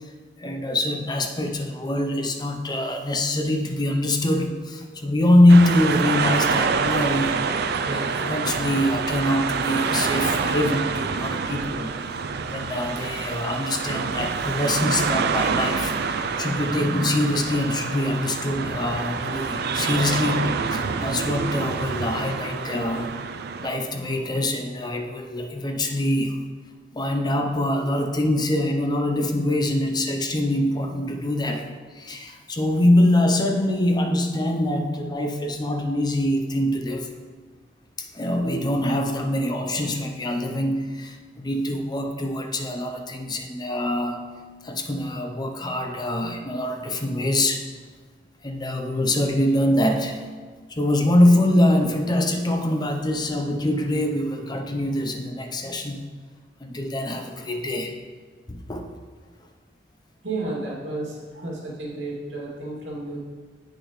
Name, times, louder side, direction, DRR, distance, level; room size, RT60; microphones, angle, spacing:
voice 1, 0.4-7.4 7.8-11.9 12.5-16.0 16.4-23.1 23.6-26.4 26.9-31.7 31.9-37.1 38.0-44.2 44.6-47.6 48.4-50.2 50.7-56.0 56.6-57.9 58.5-58.9, left 1 dB, 25° left, 4 dB, 0.6 m, -24 dB
sound 1, 5.5-23.7, right 5 dB, 60° right, 0.4 m, -26 dB
voice 2, 60.2-63.2, right 2 dB, 80° right, -5 dB, 2.4 m, -32 dB
8.2 x 6.4 x 3.2 m, 1.5 s
head